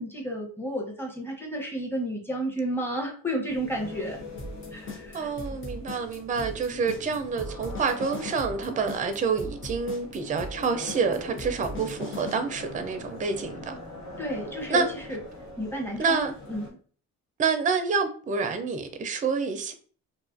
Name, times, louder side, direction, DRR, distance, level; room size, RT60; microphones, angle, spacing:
voice 1, 0.0-4.2 4.7-5.3 14.2-14.8 15.1-15.2 15.6-16.7, right 1 dB, 5° left, 0.8 m, -32 dB
sound 1, 3.5-16.7, left 2 dB, 70° left, 1.0 m, -42 dB
sound 2, 4.4-12.4, left 1 dB, 40° left, 0.8 m, -38 dB
voice 2, 5.1-13.8 14.7-14.9 16.0-16.3 17.4-19.7, right 5 dB, 25° right, 0.4 m, -28 dB
2.6 x 2.4 x 2.4 m
cardioid pair, 90°, 30 cm